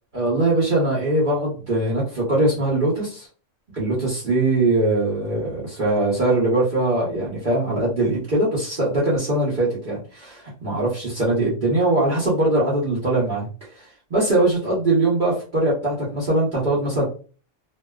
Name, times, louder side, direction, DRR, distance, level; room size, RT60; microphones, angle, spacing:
voice 1, 0.1-3.3 3.7-13.5 13.7-17.1, right 2 dB, 50° right, -8 dB, 0.9 m, -21 dB
2.6 x 2.2 x 2.3 m, 0.38 s
omnidirectional pair, 1.2 m